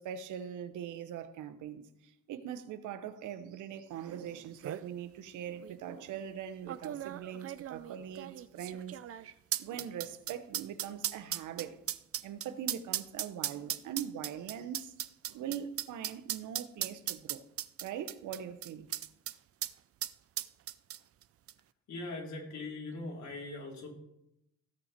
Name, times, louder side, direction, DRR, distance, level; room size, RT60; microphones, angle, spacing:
voice 1, 0.0-9.3 9.6-11.8 12.2-17.4 17.8-18.9, right 9 dB, 85° right, 1.0 m, -42 dB
sound 1, 4.1-4.2 4.4-4.9 5.6-5.7 6.7-19.4 19.6-19.7 20.0-21.2 21.5-21.6, right 11 dB, 50° right, 0.5 m, -37 dB
voice 2, 21.9-23.9, left 2 dB, 65° left, 3.7 m, -41 dB
16.5 x 5.8 x 4.4 m
cardioid pair, 90°, 30 cm